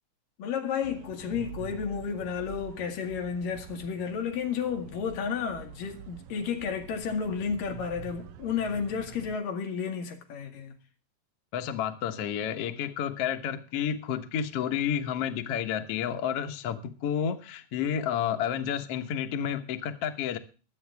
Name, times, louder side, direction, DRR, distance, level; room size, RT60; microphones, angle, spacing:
voice 1, 0.4-10.8, left 6 dB, 80° left, 3.6 m, -32 dB
sound 1, 0.8-9.4, right 12 dB, 75° right, 1.6 m, -46 dB
voice 2, 11.5-20.4, left 9 dB, 55° left, 1.9 m, -30 dB
23.5 x 8.7 x 3.5 m
omnidirectional pair, 3.8 m